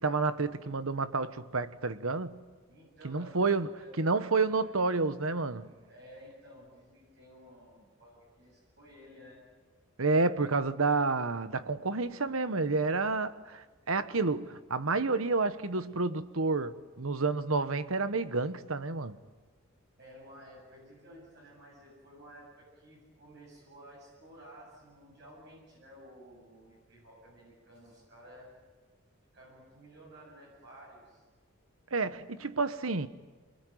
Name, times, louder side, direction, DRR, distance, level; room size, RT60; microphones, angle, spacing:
voice 1, 0.0-2.4 3.0-3.7 4.0-5.7 10.0-19.2 31.9-33.1, right 3 dB, 80° right, 1.2 m, -30 dB
voice 2, 2.7-4.3 4.6-4.7 5.9-9.4 20.0-28.5 29.3-31.3, equal, 55° right, 7.8 m, -54 dB
28.0 x 22.0 x 9.4 m
head